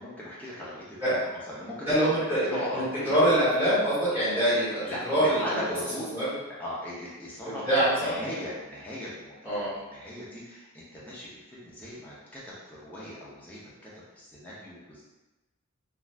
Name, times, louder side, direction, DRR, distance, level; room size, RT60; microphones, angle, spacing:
voice 1, 0.0-3.2 4.8-6.1 6.5-15.0, left 1 dB, 5° left, -8 dB, 0.6 m, -39 dB
voice 2, 1.9-5.6 6.1-6.2 7.4-8.2 9.4-9.7, right 1 dB, 10° right, -12 dB, 1.2 m, -25 dB
2.4 x 2.4 x 3.2 m, 1.1 s
head